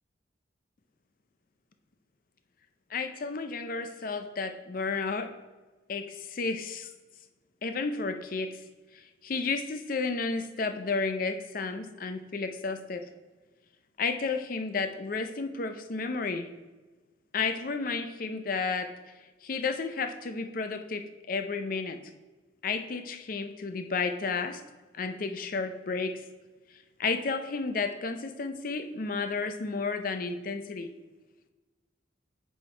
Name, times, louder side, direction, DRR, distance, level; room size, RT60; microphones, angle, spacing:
voice 1, 2.9-5.3 5.9-6.9 7.6-8.6 8.9-13.0 14.0-16.5 17.3-19.1 19.4-22.0 22.6-24.6 24.9-26.2 27.0-30.9, left 4 dB, 45° left, 8 dB, 0.5 m, -32 dB
7.4 x 4.5 x 4.4 m, 1.3 s
head